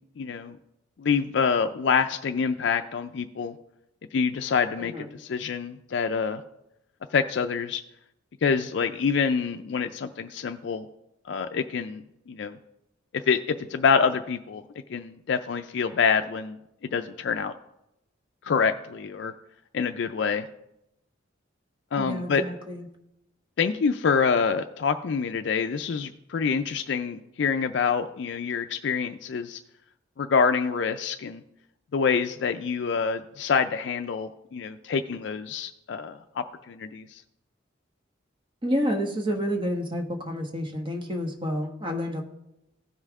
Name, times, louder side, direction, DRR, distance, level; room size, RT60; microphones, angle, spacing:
voice 1, 0.2-0.6 1.0-3.6 4.1-6.4 7.1-7.8 8.4-10.9 11.2-12.6 13.1-14.6 14.9-16.6 16.9-17.5 18.4-19.3 19.7-20.5 21.9-22.4 23.6-29.6 30.2-31.4 31.9-37.2, left 5 dB, 65° left, 8 dB, 0.4 m, -26 dB
voice 2, 22.0-22.8 38.6-42.2, equal, 25° right, 2 dB, 1.1 m, -29 dB
15.5 x 5.5 x 3.6 m, 0.86 s
head